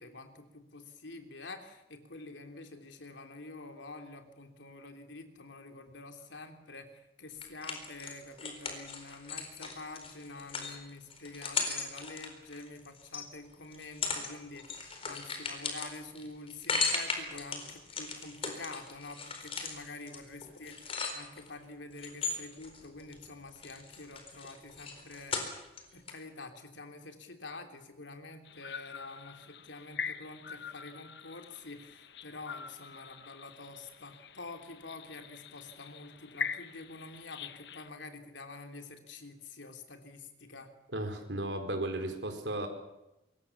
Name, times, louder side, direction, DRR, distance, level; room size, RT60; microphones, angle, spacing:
voice 1, 0.0-25.4 25.9-40.7, left 3 dB, 85° left, 5 dB, 3.2 m, -47 dB
sound 1, 7.4-13.2 13.7-14.3 14.6-21.5 22.0-23.3 23.5-25.8 26.1-26.2, left 4 dB, 30° left, 4.3 m, -37 dB
sound 2, 28.4-37.9, left 6 dB, 65° left, 1.0 m, -44 dB
voice 2, 40.9-42.7, right 1 dB, 75° right, 5 dB, 4.5 m, -35 dB
25.0 x 22.0 x 7.3 m, 0.93 s
head